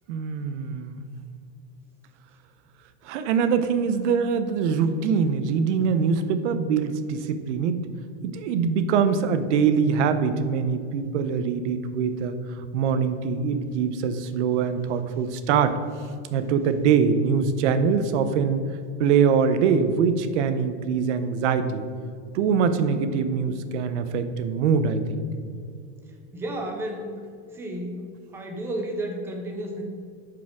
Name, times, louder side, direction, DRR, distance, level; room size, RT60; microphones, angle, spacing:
voice 1, 0.1-1.0 3.0-7.8 8.2-15.8 16.3-18.6 19.0-21.8 22.3-25.2, right 6 dB, 80° right, 10 dB, 0.8 m, -23 dB
voice 2, 26.3-27.1 27.5-28.1 28.3-29.8, right 1 dB, 5° right, 2 dB, 0.4 m, -32 dB
10.5 x 4.9 x 3.5 m, 2.3 s
supercardioid pair, 175°, 35 cm